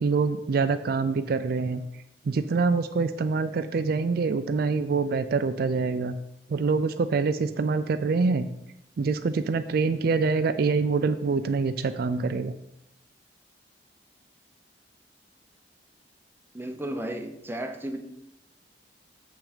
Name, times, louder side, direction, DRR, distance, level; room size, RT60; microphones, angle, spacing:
voice 1, 0.0-1.8 2.3-6.2 6.5-8.5 9.0-12.5, right 4 dB, 60° right, 10 dB, 0.4 m, -25 dB
voice 2, 16.5-18.0, right 1 dB, 15° right, 5 dB, 0.8 m, -34 dB
7.4 x 6.1 x 5.0 m, 0.82 s
head